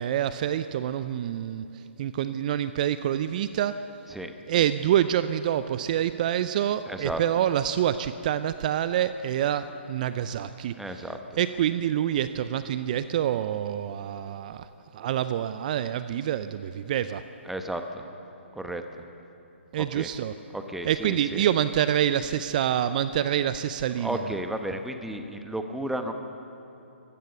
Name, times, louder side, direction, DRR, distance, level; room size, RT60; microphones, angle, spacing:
voice 1, 0.0-3.7 4.5-10.7 11.4-14.7 14.9-17.2 19.7-20.3 20.9-24.2, right 10 dB, 40° right, 12 dB, 0.6 m, -26 dB
voice 2, 6.9-7.2 10.8-11.2 17.4-18.0 18.5-19.0 19.8-20.1 20.5-21.5 24.0-26.1, right 1 dB, 5° right, 6 dB, 1.0 m, -33 dB
24.5 x 15.5 x 6.9 m, 2.9 s
figure-of-eight pair, 140°, 7 cm